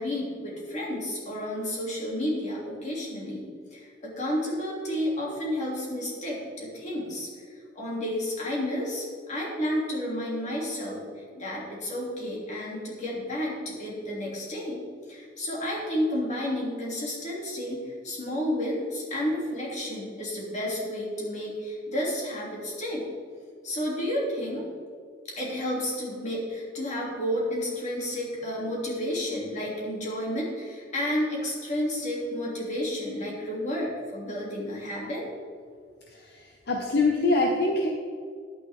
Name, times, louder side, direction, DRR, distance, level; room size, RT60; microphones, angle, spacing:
voice 1, 0.0-14.8 15.1-23.1 23.6-24.7 25.3-35.3, left 1 dB, 40° left, -4 dB, 2.9 m, -31 dB
voice 2, 36.7-37.9, left 2 dB, 65° left, 1 dB, 0.9 m, -23 dB
10.5 x 9.3 x 3.6 m, 2.1 s
head